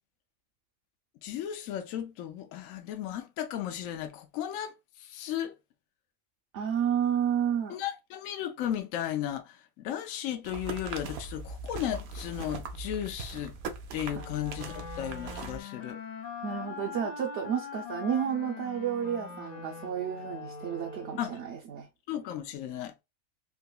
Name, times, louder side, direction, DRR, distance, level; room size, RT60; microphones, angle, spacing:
voice 1, 1.2-4.7 5.0-5.5 7.7-13.6 13.9-16.0 21.2-21.4 22.1-23.0, left 11 dB, 75° left, 1.0 m, -35 dB
voice 2, 6.5-7.8 14.1-14.2 16.4-21.9, right 8 dB, 65° right, 0.8 m, -31 dB
sound 1, 10.4-15.6, right 3 dB, 80° right, 1.1 m, -40 dB
sound 2, 14.1-21.6, left 5 dB, 45° left, 0.5 m, -42 dB
3.7 x 2.8 x 2.2 m
omnidirectional pair, 1.4 m